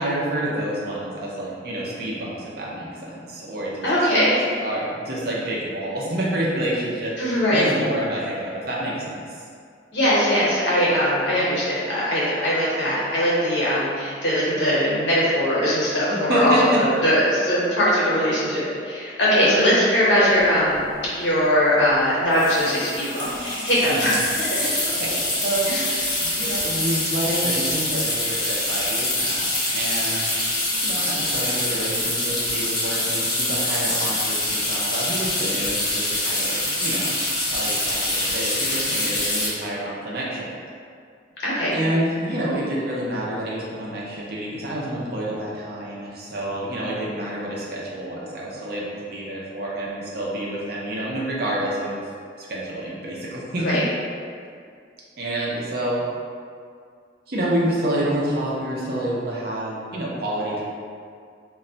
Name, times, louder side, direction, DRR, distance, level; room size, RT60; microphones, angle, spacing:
voice 1, 0.0-3.9 4.6-9.4 16.1-16.8 19.4-19.8 23.9-24.2 25.0-30.3 30.8-37.1 37.5-40.5 41.7-52.0 52.4-53.7 55.2-56.0 57.3-60.6, right 1 dB, 55° right, -5 dB, 0.6 m, -28 dB
voice 2, 3.8-4.4 7.2-7.7 9.9-20.8 21.2-24.7 25.7-25.9 41.4-41.8 53.6-53.8, equal, 70° left, -8 dB, 0.9 m, -21 dB
sound 1, 20.4-20.5 20.7-21.0 22.3-39.5, left 1 dB, 25° left, 0.6 m, -25 dB
2.2 x 2.1 x 3.8 m, 2.2 s
head